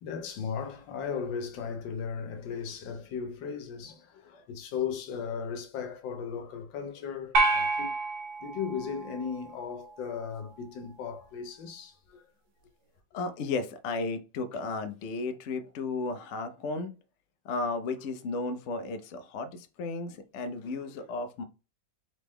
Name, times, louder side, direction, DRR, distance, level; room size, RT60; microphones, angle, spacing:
voice 1, 0.0-7.9 8.4-12.2 20.8-21.0, left 6 dB, 85° left, 1.5 m, -36 dB
sound 1, 7.3-9.8, right 3 dB, 85° right, 1.5 m, -29 dB
voice 2, 13.1-16.9 17.4-21.4, left 3 dB, 70° left, 0.6 m, -34 dB
3.9 x 3.5 x 3.2 m
omnidirectional pair, 2.0 m